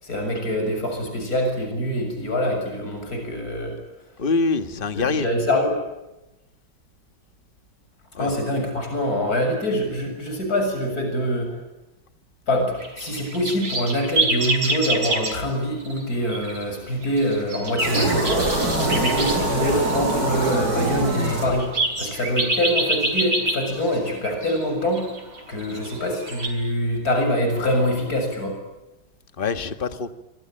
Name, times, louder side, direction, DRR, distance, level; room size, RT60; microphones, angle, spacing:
voice 1, 0.0-3.8 4.9-5.8 8.2-11.6 12.5-18.5 18.8-21.7 22.0-25.1 25.5-28.5, equal, 45° left, 4 dB, 7.5 m, -24 dB
voice 2, 4.2-5.3 8.1-8.3 29.4-30.1, left 4 dB, 30° left, 10 dB, 1.5 m, -24 dB
sound 1, 12.8-15.3 15.8-16.0 16.3-16.6 17.0-26.5, right 2 dB, 70° right, 6.6 m, -26 dB
sound 2, 17.8-22.0, right 2 dB, 50° right, 6.3 m, -24 dB
27.0 x 24.5 x 9.0 m, 0.97 s
omnidirectional pair, 2.2 m